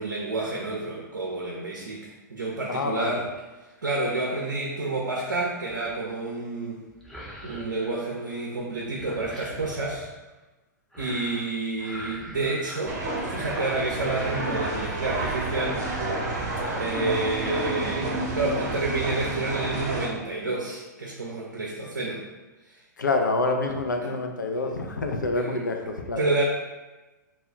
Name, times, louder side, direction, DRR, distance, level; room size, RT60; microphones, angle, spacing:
voice 1, 0.0-3.2 3.8-6.8 7.4-10.1 11.0-13.0 13.3-15.8 16.7-22.2 24.0-24.1 24.5-24.8 25.3-25.6 26.2-26.4, right 2 dB, 80° right, -2 dB, 0.4 m, -29 dB
voice 2, 2.7-3.2 23.0-26.2, left 3 dB, 80° left, 4 dB, 0.4 m, -27 dB
sound 1, 5.7-6.1 6.9-8.5 8.7-10.1 10.9-11.5 11.8-13.6 13.9-14.9 15.2-15.4 15.7-16.8 17.2-17.6, equal, 5° left, 0.5 m, -43 dB
sound 2, 12.9-20.1, right 2 dB, 35° right, 0.8 m, -30 dB
2.2 x 2.0 x 3.7 m, 1.2 s
figure-of-eight pair, 100°, 10 cm